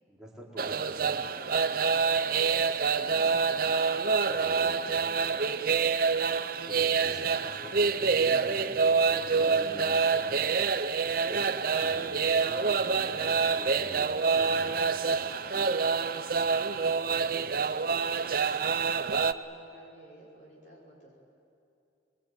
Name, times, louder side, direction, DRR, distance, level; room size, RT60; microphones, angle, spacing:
voice 1, 0.1-1.2 4.3-5.0 6.7-8.7 9.1-10.6 11.3-11.5 11.8-15.3, right 1 dB, 5° right, -5 dB, 4.3 m, -46 dB
sound 1, 0.6-19.3, right 5 dB, 50° right, 0.6 m, -27 dB
voice 2, 1.5-3.6 4.2-5.7 16.3-21.2, right 1 dB, 40° left, -4 dB, 5.9 m, -53 dB
25.0 x 21.5 x 9.2 m, 2.6 s
head